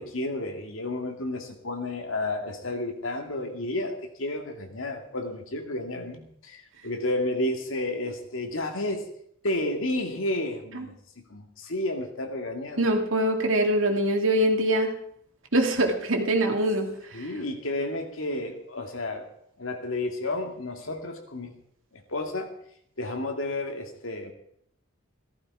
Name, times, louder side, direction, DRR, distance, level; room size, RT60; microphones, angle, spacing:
voice 1, 0.0-9.1 9.4-12.9 17.1-19.3 19.6-21.5 21.9-22.5 23.0-24.3, left 2 dB, 80° left, 4 dB, 2.3 m, -31 dB
voice 2, 12.8-14.9 15.5-16.9 17.2-17.3, right 1 dB, 75° right, 3 dB, 2.5 m, -23 dB
15.5 x 14.0 x 4.8 m, 0.68 s
head